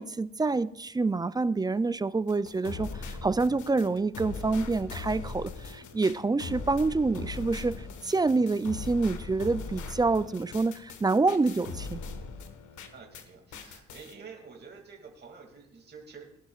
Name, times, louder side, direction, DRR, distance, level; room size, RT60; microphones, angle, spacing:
voice 1, 0.0-12.0, right 3 dB, 15° right, 0.3 m, -27 dB
sound 1, 2.3-13.3 13.5-14.1, left 4 dB, 75° left, 1.4 m, -40 dB
voice 2, 12.9-16.4, right 5 dB, 35° right, 2.4 m, -48 dB
20.0 x 11.5 x 2.4 m
cardioid pair, 90°, 30 cm